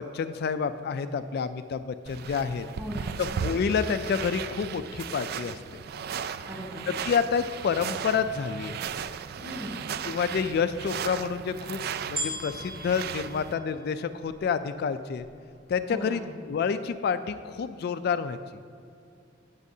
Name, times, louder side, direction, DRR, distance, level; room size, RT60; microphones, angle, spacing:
voice 1, 0.0-2.6 3.2-5.6 7.0-8.8 10.0-15.3 15.7-18.4, left 6 dB, 55° left, 10 dB, 0.3 m, -29 dB
sound 1, 2.1-13.5, right 7 dB, 55° right, 0.3 m, -36 dB
voice 2, 2.8-3.3 6.5-6.9 9.4-9.8 15.9-16.3, equal, 15° right, -5 dB, 2.5 m, -38 dB
sound 2, 12.2-14.5 15.2-15.3, right 1 dB, 30° right, 2.5 m, -37 dB
16.5 x 7.3 x 2.7 m, 2.4 s
head